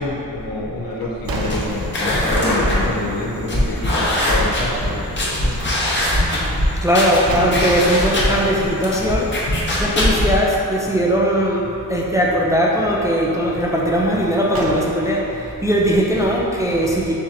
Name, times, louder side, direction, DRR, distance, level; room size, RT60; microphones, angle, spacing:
voice 1, 0.0-5.8, left 2 dB, 70° left, -5 dB, 1.0 m, -27 dB
sound 1, 0.9-2.5 2.9-3.0 6.8-8.1 14.1-15.4, right 2 dB, 70° right, 0.7 m, -30 dB
sound 2, 1.2-10.4, left 1 dB, 30° left, 0.9 m, -21 dB
voice 2, 6.8-9.3 9.8-17.1, equal, 10° right, -4 dB, 0.3 m, -19 dB
7.1 x 2.7 x 2.6 m, 2.9 s
wide cardioid pair, 120°, 36 cm